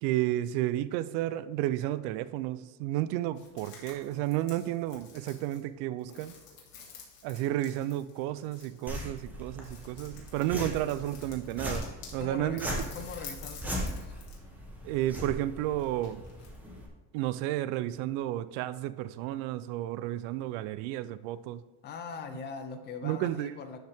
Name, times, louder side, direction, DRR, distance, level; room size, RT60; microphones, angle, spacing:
voice 1, 0.0-6.3 7.2-12.7 14.8-16.2 17.1-21.6 23.0-23.5, right 14 dB, 75° right, 0.5 m, -32 dB
sound 1, 3.4-12.2 12.6-14.4 14.7-16.6, left 6 dB, 70° left, 2.7 m, -51 dB
sound 2, 8.9-16.9, equal, 5° right, 1.0 m, -39 dB
voice 2, 12.2-12.6 12.9-14.1 21.8-23.8, left 5 dB, 30° left, 0.5 m, -41 dB
11.5 x 5.5 x 3.5 m
cardioid pair, 180°, 37 cm